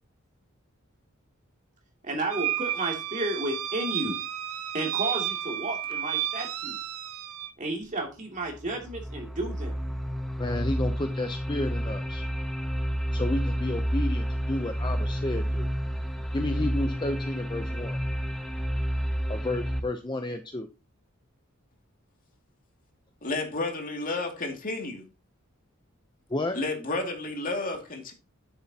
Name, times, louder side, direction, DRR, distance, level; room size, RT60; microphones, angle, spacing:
voice 1, 2.0-4.2 4.7-6.8 7.6-9.7, right 2 dB, 35° right, 2.7 m, -32 dB
sound 1, 2.3-7.5, right 11 dB, 80° right, 0.8 m, -32 dB
sound 2, 8.5-19.8, equal, ahead, 1.0 m, -30 dB
voice 2, 10.4-12.3 13.1-15.7 16.3-18.0 19.3-20.7 26.3-26.6, left 2 dB, 20° left, 0.6 m, -31 dB
voice 3, 23.2-25.0 26.5-28.1, left 2 dB, 40° left, 2.4 m, -31 dB
10.0 x 8.1 x 2.9 m
head